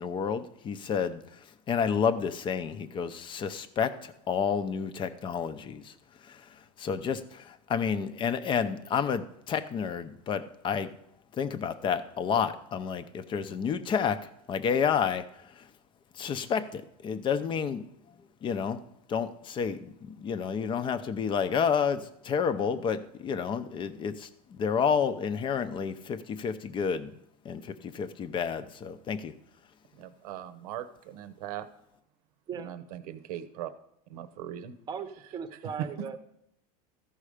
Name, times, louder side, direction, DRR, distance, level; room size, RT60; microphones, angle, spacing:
voice 1, 0.0-10.9 11.3-15.7 16.1-17.9 18.2-18.8 19.1-27.1 27.4-29.3, left 7 dB, 25° left, 11 dB, 0.6 m, -30 dB
voice 2, 30.0-31.7 32.6-33.7 34.1-34.7 35.8-35.9, right 11 dB, 85° right, 12 dB, 0.9 m, -39 dB
voice 3, 34.9-36.2, right 6 dB, 20° right, 9 dB, 0.8 m, -38 dB
14.0 x 5.5 x 4.9 m, 0.77 s
supercardioid pair, 145°, 19 cm